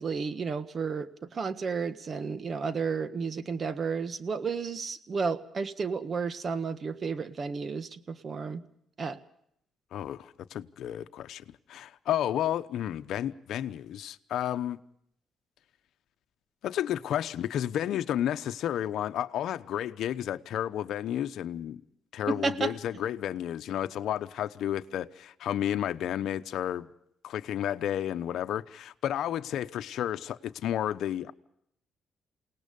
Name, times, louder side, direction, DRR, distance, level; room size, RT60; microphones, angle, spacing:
voice 1, 0.0-8.6 9.0-9.2 22.3-22.7, right 5 dB, 45° right, 1.5 m, -32 dB
voice 2, 9.9-11.4 11.7-14.8 16.6-21.8 22.1-26.9 27.2-31.3, left 11 dB, 75° left, 0.9 m, -31 dB
28.5 x 18.5 x 5.4 m
cardioid pair, 90°, 0 cm